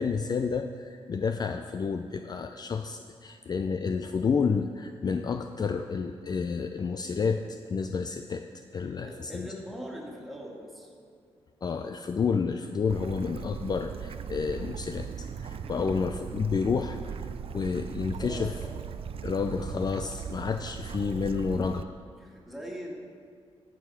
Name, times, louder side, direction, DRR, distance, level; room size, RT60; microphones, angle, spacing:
voice 1, 0.0-8.5 8.7-9.5 11.6-17.2 17.5-18.5 19.2-21.9, left 5 dB, 40° left, 7 dB, 0.4 m, -30 dB
voice 2, 8.8-10.9 15.6-16.0 18.2-18.7 21.5-21.7 22.2-22.9, equal, ahead, -2 dB, 2.1 m, -42 dB
Bird / Stream, 12.9-21.8, right 7 dB, 60° right, 0.5 m, -38 dB
14.0 x 4.9 x 5.7 m, 2.2 s
cardioid pair, 80°, 11 cm